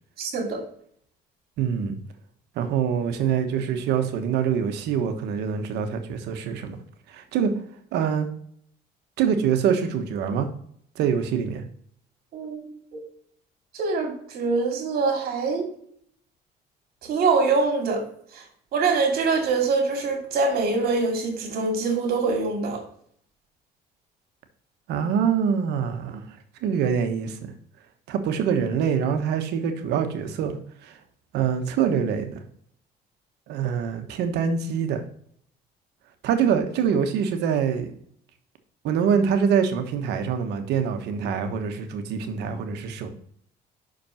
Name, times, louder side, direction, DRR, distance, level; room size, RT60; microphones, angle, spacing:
voice 1, 0.2-0.6 12.3-13.0 13.7-15.7 17.0-18.0 18.3-18.4 18.7-22.8, right 4 dB, 65° right, 2.6 m, -24 dB
voice 2, 1.6-2.0 2.5-6.8 7.1-7.5 7.9-8.3 9.2-10.5 10.9-11.6 24.9-26.2 26.6-27.5 28.1-30.6 30.8-31.0 31.3-32.4 33.5-35.0 36.2-38.0 38.8-43.1, right 7 dB, 85° right, 1.2 m, -25 dB
5.9 x 5.2 x 5.7 m
cardioid pair, 110°, 17 cm